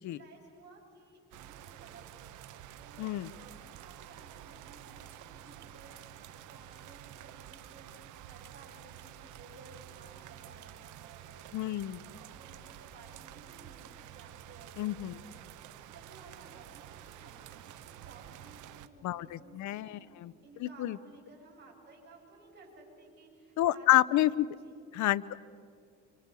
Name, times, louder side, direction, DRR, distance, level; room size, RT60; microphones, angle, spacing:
voice 1, 0.0-2.3 2.8-24.3 24.6-24.8, right 3 dB, 35° right, -3 dB, 7.9 m, -57 dB
sound 1, 1.3-18.9, right 11 dB, 90° right, 1.1 m, -50 dB
voice 2, 3.0-3.3 11.5-12.0 14.8-15.1 19.0-20.3 20.6-21.0 23.6-24.5 24.9-25.4, left 14 dB, 75° left, 17 dB, 0.7 m, -29 dB
26.5 x 26.0 x 6.9 m, 2.4 s
cardioid pair, 110°, 29 cm